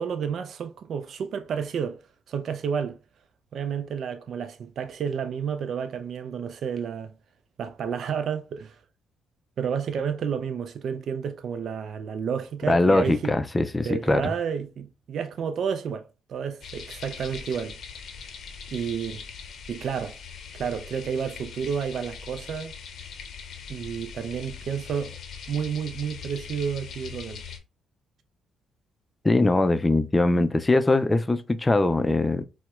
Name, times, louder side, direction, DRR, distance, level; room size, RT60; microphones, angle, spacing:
voice 1, 0.0-2.0 2.3-3.0 3.5-7.1 7.6-8.8 9.6-13.3 13.9-17.8 18.7-19.2 19.7-20.2 20.5-22.7 23.7-25.2 25.5-27.4, right 7 dB, 65° right, 0.4 m, -30 dB
voice 2, 12.7-14.3 29.2-32.4, left 2 dB, 20° left, 0.3 m, -21 dB
sound 1, 16.6-27.6, left 6 dB, 65° left, 0.6 m, -41 dB
4.3 x 2.1 x 2.3 m
cardioid pair, 90°, 0 cm